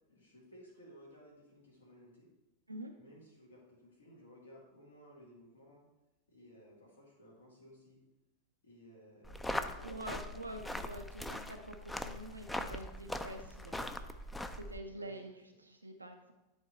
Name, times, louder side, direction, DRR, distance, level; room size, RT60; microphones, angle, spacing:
voice 1, 0.1-2.3 3.0-5.9 6.3-8.0 8.6-10.1 15.0-15.2, equal, 70° left, -4 dB, 2.0 m, -57 dB
sound 1, 9.2-14.8, left 1 dB, 5° left, 0.5 m, -41 dB
voice 2, 9.8-14.0 14.5-16.3, right 1 dB, 85° right, 4 dB, 0.5 m, -46 dB
10.5 x 3.6 x 4.3 m, 1.0 s
figure-of-eight pair, 90°, 0 cm